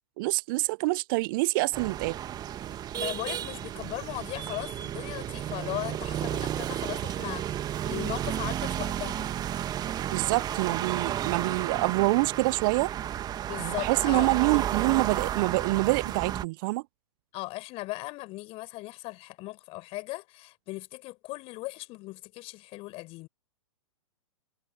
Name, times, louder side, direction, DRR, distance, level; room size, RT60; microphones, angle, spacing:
voice 1, 0.2-2.2 10.1-12.9 13.6-16.8, right 24 dB, 40° right, 0.7 m, -26 dB
sound 1, 1.7-16.4, right 11 dB, 25° right, 2.3 m, -32 dB
voice 2, 2.7-9.4 13.5-14.6 17.3-23.3, left 21 dB, 35° left, 5.5 m, -38 dB
figure-of-eight pair, 110°, 17 cm